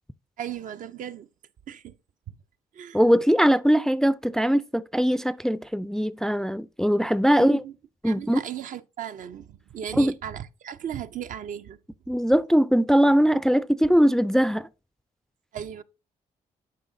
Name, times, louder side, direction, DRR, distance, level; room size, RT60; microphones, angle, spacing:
voice 1, 0.4-1.3 1.7-2.0 2.3-2.4 2.7-3.0 7.4-7.7 8.0-11.8 15.5-15.8, right 9 dB, 60° right, 0.5 m, -36 dB
voice 2, 2.9-7.6 8.0-8.4 10.0-10.1 12.1-14.7, equal, 5° left, 0.3 m, -21 dB
11.0 x 4.9 x 2.6 m
supercardioid pair, 70°, 15 cm